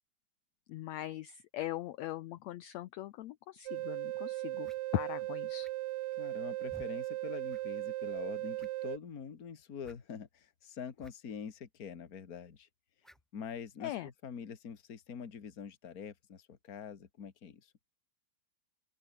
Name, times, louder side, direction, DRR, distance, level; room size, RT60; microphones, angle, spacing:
voice 1, 0.7-5.7 13.8-14.1, left 14 dB, 75° left, 1.6 m, -40 dB
sound 1, 3.7-9.0, right 18 dB, 85° right, 1.6 m, -37 dB
sound 2, 3.8-3.9 4.6-4.8 5.6-6.0 6.7-6.9 7.5-7.6 7.9-8.0 8.5-8.9 9.8-10.0 11.0-11.1 11.4-11.5 13.0-13.3, equal, ahead, 4.0 m, -56 dB
voice 2, 6.2-12.7 13.3-17.7, left 7 dB, 35° left, 1.7 m, -45 dB
open air
omnidirectional pair, 3.9 m